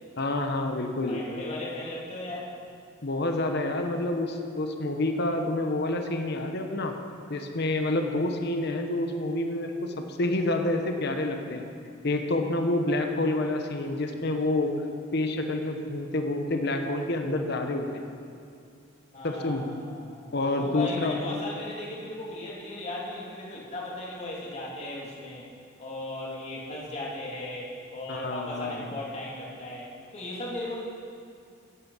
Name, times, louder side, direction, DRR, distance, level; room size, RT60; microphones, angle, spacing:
voice 1, 0.2-1.2 3.0-6.9 7.3-11.6 12.0-14.7 15.1-17.9 19.2-19.6 20.3-21.2 28.1-28.8, left 2 dB, 55° left, 5 dB, 1.0 m, -28 dB
voice 2, 1.1-2.5 19.1-25.5 25.8-30.8, left 1 dB, 35° left, -5 dB, 2.8 m, -37 dB
15.5 x 9.6 x 5.7 m, 2.4 s
head